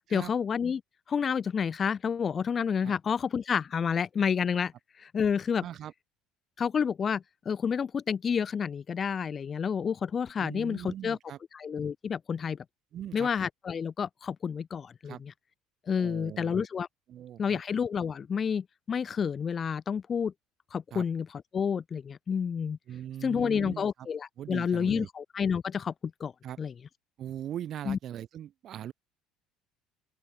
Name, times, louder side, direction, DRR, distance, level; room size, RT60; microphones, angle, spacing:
voice 1, 0.1-0.8 1.1-4.7 5.0-5.6 6.6-11.2 11.5-12.6 13.1-15.3 15.9-16.9 17.4-20.3 20.7-22.8 23.2-25.9 26.2-26.3 26.6-26.7 27.9-28.0, left 7 dB, 25° left, 0.3 m, -29 dB
voice 2, 5.6-5.9 10.4-11.4 12.9-13.3 15.0-15.2 16.0-16.7 17.1-17.6 20.9-21.0 22.9-24.1 24.4-25.1 26.4-26.6 27.2-28.9, right 11 dB, 40° right, 2.6 m, -40 dB
open air
cardioid pair, 155°, 0 cm